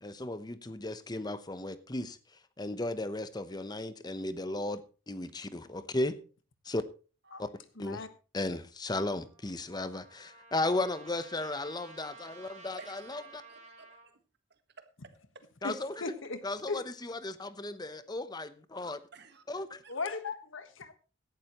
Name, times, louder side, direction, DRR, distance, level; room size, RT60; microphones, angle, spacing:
voice 1, 0.0-2.2 2.6-4.8 5.1-6.2 6.6-6.8 7.4-7.5 7.8-8.1 8.3-13.4 15.6-16.1 16.4-19.0 19.5-19.8, left 2 dB, 20° left, 0.8 m, -35 dB
voice 2, 7.8-8.1 15.6-16.4 16.7-16.8 19.9-20.9, left 3 dB, 80° left, 1.4 m, -37 dB
Trumpet, 9.0-14.1, right 3 dB, 35° right, 4.7 m, -53 dB
voice 3, 12.8-13.9 14.5-14.9 17.9-18.0 19.1-19.9, right 5 dB, 55° right, 1.5 m, -54 dB
16.5 x 11.5 x 3.0 m
head